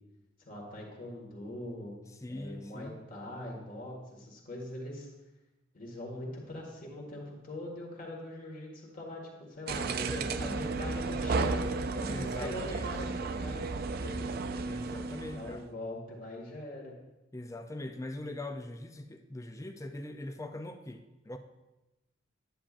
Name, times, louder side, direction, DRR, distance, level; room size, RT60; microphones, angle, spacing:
voice 1, 0.4-2.0 2.3-5.1 5.7-14.3 15.3-17.0, left 1 dB, 45° left, -1 dB, 1.8 m, -42 dB
voice 2, 2.2-3.0 10.1-10.6 12.1-12.9 14.7-15.6 17.3-21.4, left 1 dB, 15° left, 7 dB, 0.4 m, -41 dB
sound 1, 9.7-15.7, right 3 dB, 50° right, 0.4 m, -33 dB
10.0 x 8.5 x 2.5 m, 1.0 s
head